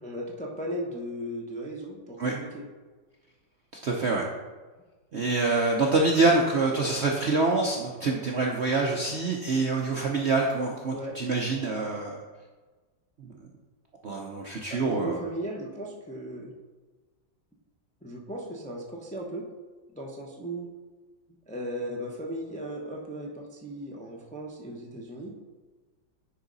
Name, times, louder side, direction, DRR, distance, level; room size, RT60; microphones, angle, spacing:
voice 1, 0.0-2.7 10.9-11.2 14.7-16.5 18.0-19.4 19.9-20.7 21.5-25.3, right 1 dB, 10° left, -2 dB, 0.5 m, -36 dB
voice 2, 3.8-4.3 5.1-12.2 13.2-13.3 14.0-15.2, right 3 dB, 55° right, -1 dB, 0.7 m, -26 dB
9.6 x 4.8 x 4.0 m, 1.3 s
omnidirectional pair, 2.0 m